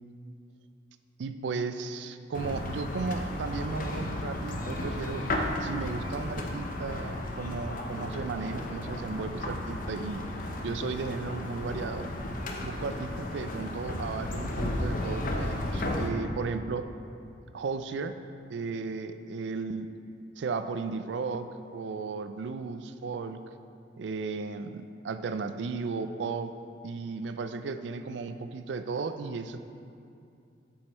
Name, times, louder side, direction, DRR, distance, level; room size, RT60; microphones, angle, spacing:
voice 1, 1.2-5.3 5.6-10.2 10.6-12.1 12.6-16.9 17.5-18.2 18.5-19.9 20.4-21.5 21.7-23.5 24.0-26.5 26.8-29.6, right 4 dB, 75° right, 10 dB, 0.4 m, -35 dB
sound 1, 2.3-16.1, left 1 dB, 50° left, 0.7 m, -34 dB
7.6 x 6.2 x 4.2 m, 2.5 s
head